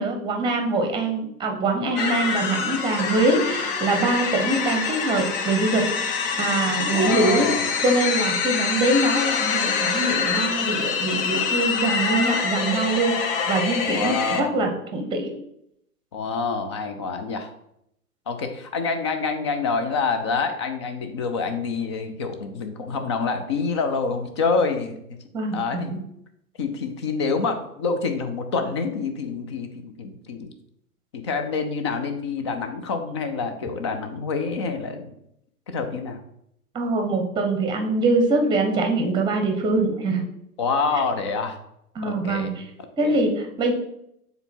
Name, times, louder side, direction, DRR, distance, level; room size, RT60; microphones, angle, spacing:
voice 1, 0.0-6.1 6.4-7.5 7.8-15.3 25.3-26.0 36.7-40.3 41.9-42.6 43.0-43.7, right 2 dB, 10° right, 4 dB, 0.9 m, -23 dB
sound 1, 2.0-14.4, left 5 dB, 40° left, 0.8 m, -25 dB
voice 2, 6.9-7.7 13.9-14.6 16.1-17.5 18.3-25.2 25.5-25.9 26.6-30.5 31.1-35.1 35.7-36.2 40.6-41.6 42.0-42.6 43.0-43.2, left 4 dB, 20° left, 7 dB, 0.4 m, -27 dB
6.8 x 4.0 x 4.3 m, 0.77 s
figure-of-eight pair, 110°, 45 cm